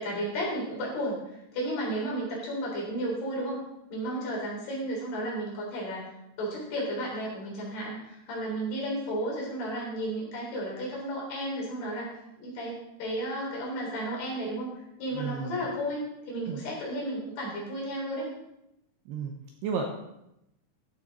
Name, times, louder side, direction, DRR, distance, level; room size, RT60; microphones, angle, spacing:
voice 1, 0.0-3.6 3.9-12.1 12.4-14.7 15.0-18.3, right 1 dB, 55° left, -4 dB, 5.3 m, -33 dB
voice 2, 15.1-15.6 16.5-16.6 19.1-19.3 19.6-19.9, right 6 dB, 75° right, 2 dB, 2.6 m, -32 dB
14.0 x 8.0 x 4.1 m, 0.85 s
omnidirectional pair, 5.6 m